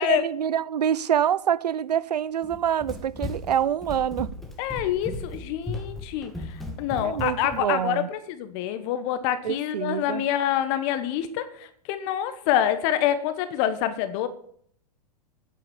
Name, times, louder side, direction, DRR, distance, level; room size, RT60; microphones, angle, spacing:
voice 1, 0.0-4.3 7.0-8.1 9.4-10.3, right 9 dB, 80° right, 0.6 m, -26 dB
Run, 2.4-7.6, left 2 dB, ahead, 2.3 m, -36 dB
voice 2, 4.6-14.3, left 11 dB, 45° left, 1.2 m, -26 dB
10.0 x 9.3 x 7.1 m
hypercardioid pair, 105°, 21 cm